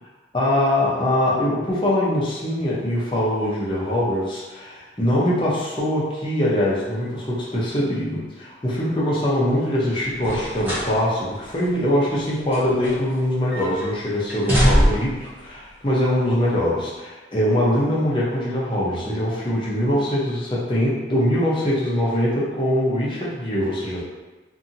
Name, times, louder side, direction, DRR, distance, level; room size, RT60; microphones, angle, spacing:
voice 1, 0.3-24.0, left 1 dB, 30° left, -7 dB, 0.7 m, -22 dB
sound 1, 10.2-10.9 11.3-11.5 12.2-13.2 13.5-13.9 14.3-15.2 16.1-16.2, equal, 10° right, 1.0 m, -22 dB
2.7 x 2.6 x 2.7 m, 1.2 s
head